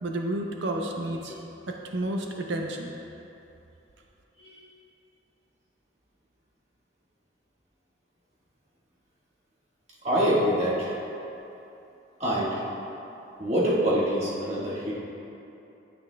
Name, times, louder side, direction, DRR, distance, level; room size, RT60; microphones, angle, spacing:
voice 1, 0.0-1.3 1.7-2.9, right 1 dB, 75° right, 2 dB, 0.6 m, -31 dB
voice 2, 10.0-10.9 12.2-12.6 13.4-14.9, equal, 35° right, -7 dB, 1.6 m, -25 dB
9.1 x 8.8 x 2.2 m, 2.9 s
head